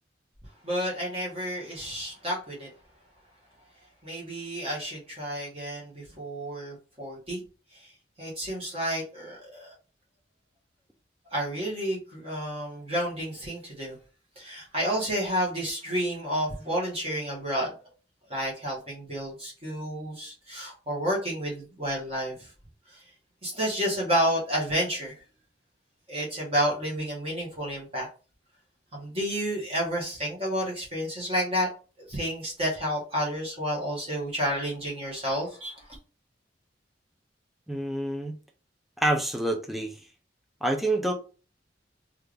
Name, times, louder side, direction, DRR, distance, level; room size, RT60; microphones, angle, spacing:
voice 1, 0.6-2.7 4.0-7.4 7.8-7.9 8.2-9.7 11.3-14.0 14.4-17.7 18.3-22.5 22.9-23.0 23.4-25.2 26.1-28.1 28.9-31.7 32.1-35.9, equal, 35° right, 1.2 m, -30 dB
voice 2, 37.7-38.4 39.0-40.0 40.6-41.1, right 1 dB, ahead, 0.4 m, -27 dB
3.3 x 2.4 x 3.3 m
head